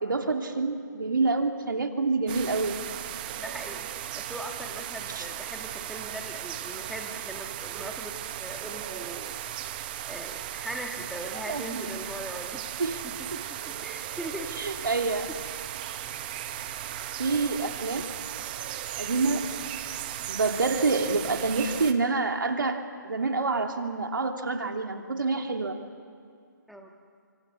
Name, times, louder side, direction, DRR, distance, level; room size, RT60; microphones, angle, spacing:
voice 1, 0.0-2.8 5.1-5.3 11.5-11.9 12.8-13.0 14.6-15.3 17.2-18.1 19.0-19.4 20.3-25.8, right 3 dB, 75° right, 4 dB, 2.8 m, -27 dB
sound 1, 2.3-21.9, right 12 dB, 25° right, 1.1 m, -37 dB
voice 2, 3.4-9.4 10.1-14.9 26.7-26.9, right 1 dB, ahead, 2 dB, 1.6 m, -40 dB
26.0 x 25.5 x 7.2 m, 2.4 s
figure-of-eight pair, 150°, 11 cm